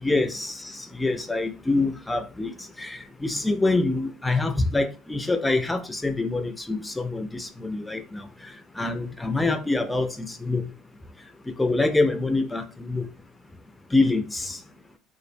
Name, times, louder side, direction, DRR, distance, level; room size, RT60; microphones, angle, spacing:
voice 1, 0.0-2.5 2.8-8.2 8.8-10.7 11.6-13.1 13.9-14.6, left 2 dB, 10° left, 0.3 m, -25 dB
2.4 x 2.0 x 2.5 m
supercardioid pair, 110°, 0 cm